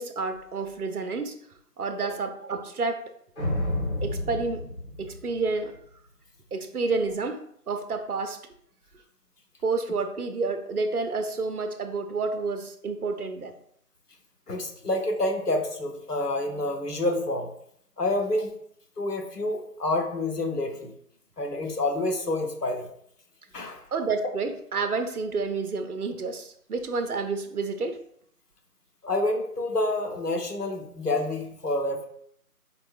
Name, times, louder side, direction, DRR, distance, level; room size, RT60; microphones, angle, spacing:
voice 1, 0.0-1.4 1.8-3.0 4.0-4.7 5.0-5.8 6.5-8.4 9.6-13.5 23.9-28.0, right 4 dB, 70° right, 8 dB, 0.6 m, -29 dB
sound 1, 3.4-5.8, left 1 dB, 45° left, 1.1 m, -30 dB
voice 2, 14.5-17.5 18.0-18.5 19.0-20.9 21.4-22.9 23.5-23.8 29.0-32.1, left 2 dB, 85° left, 4 dB, 0.9 m, -28 dB
4.5 x 3.4 x 2.4 m, 0.68 s
figure-of-eight pair, 175°, 46 cm